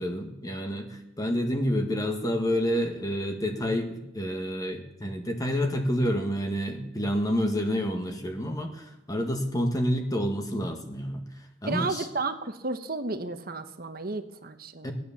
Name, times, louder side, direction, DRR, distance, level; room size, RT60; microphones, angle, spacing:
voice 1, 0.0-12.1 14.8-14.9, equal, 20° left, 4 dB, 1.5 m, -29 dB
voice 2, 11.7-14.9, right 3 dB, 50° right, 9 dB, 1.1 m, -32 dB
18.0 x 9.7 x 7.2 m, 0.92 s
head